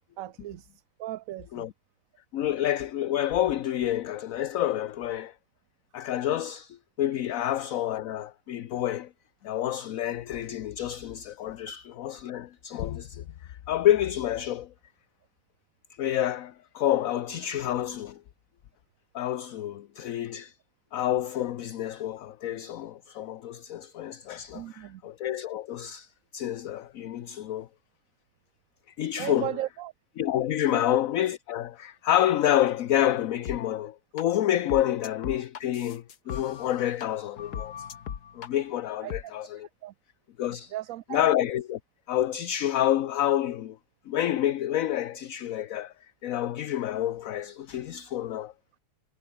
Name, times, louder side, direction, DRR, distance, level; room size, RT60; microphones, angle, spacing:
voice 1, 0.2-0.7 1.0-1.6 24.5-25.0 29.2-29.9 30.7-30.8 39.0-39.3 39.8-39.9 40.7-41.3, right 14 dB, 70° right, 1.0 m, -36 dB
voice 2, 2.3-5.3 5.9-9.1 9.4-14.7 15.9-18.2 19.1-20.6 20.9-27.7 29.0-29.5 30.2-37.9 38.3-39.7 40.4-40.7 41.1-41.8 42.1-43.8 44.1-45.9 46.2-48.5, left 12 dB, 65° left, 1.1 m, -28 dB
sound 1, 33.4-33.6 34.2-34.3 34.7-37.1 37.4-38.5 39.1-39.2, left 8 dB, 80° left, 1.9 m, -38 dB
omnidirectional pair, 1.6 m